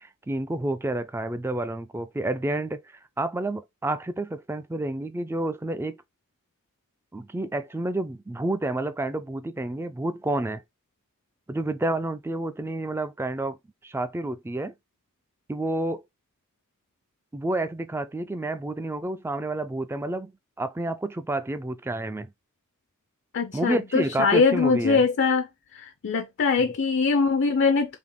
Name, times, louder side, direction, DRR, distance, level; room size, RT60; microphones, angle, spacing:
voice 1, 0.0-2.8 3.2-6.0 7.1-10.6 11.5-13.6 13.8-14.7 15.5-16.0 17.3-20.3 20.6-22.3 23.5-25.0 26.6-26.7, right 2 dB, 10° right, 0.3 m, -29 dB
voice 2, 23.3-25.5 25.7-28.0, left 4 dB, 55° left, 0.5 m, -22 dB
3.6 x 2.8 x 3.6 m
head